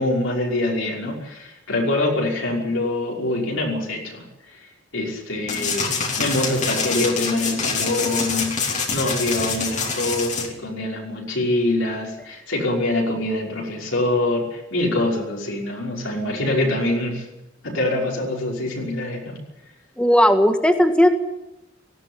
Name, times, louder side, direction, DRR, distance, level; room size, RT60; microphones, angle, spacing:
voice 1, 0.0-4.6 4.9-8.6 8.9-17.3 17.6-19.4, left 1 dB, 75° left, -2 dB, 5.7 m, -24 dB
sound 1, 5.5-10.5, left 4 dB, 35° left, 3.2 m, -25 dB
voice 2, 20.0-21.1, equal, 5° left, 6 dB, 1.8 m, -16 dB
18.0 x 16.0 x 9.9 m, 0.95 s
head